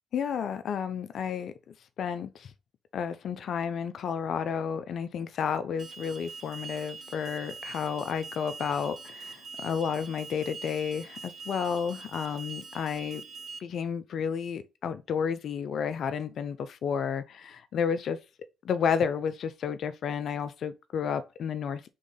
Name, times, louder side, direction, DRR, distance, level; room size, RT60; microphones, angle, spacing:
voice 1, 0.1-1.5 2.0-2.5 2.9-13.2 13.6-18.2 18.6-21.9, left 7 dB, 65° left, 0.4 m, -31 dB
Alarm, 5.8-13.6, right 4 dB, 50° right, 0.6 m, -44 dB
3.8 x 3.5 x 3.8 m
hypercardioid pair, 50°, 0 cm